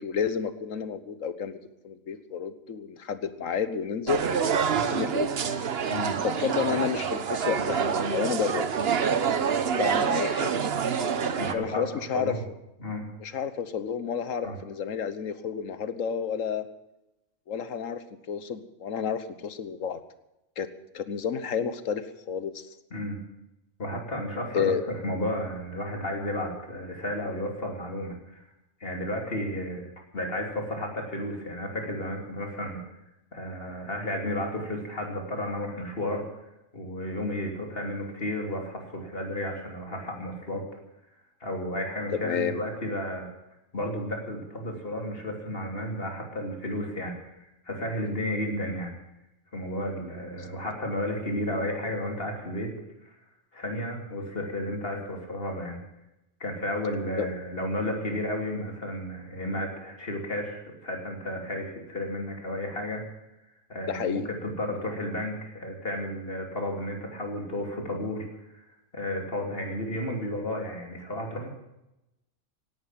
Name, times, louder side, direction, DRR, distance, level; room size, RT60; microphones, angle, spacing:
voice 1, 0.0-1.6 1.8-4.2 4.9-5.3 6.2-8.7 9.8-10.6 11.5-12.3 13.2-16.7 17.5-20.0 20.6-20.7 20.9-22.7 24.5-24.8 42.2-42.6 57.2-57.3 63.9-64.3, left 7 dB, 85° left, 13 dB, 1.5 m, -30 dB
sound 1, 4.1-11.5, right 6 dB, 55° right, 1.1 m, -27 dB
voice 2, 11.4-12.4 12.8-13.0 14.4-14.6 22.9-23.2 23.8-28.4 28.8-32.8 33.3-36.3 36.7-40.6 41.4-43.3 43.7-47.4 47.6-49.0 49.5-52.7 53.0-53.1 53.5-55.8 56.4-63.0 63.7-68.3 68.5-68.7 68.9-71.5, left 1 dB, 45° left, 2 dB, 3.4 m, -32 dB
17.0 x 11.0 x 7.5 m, 0.92 s
omnidirectional pair, 1.3 m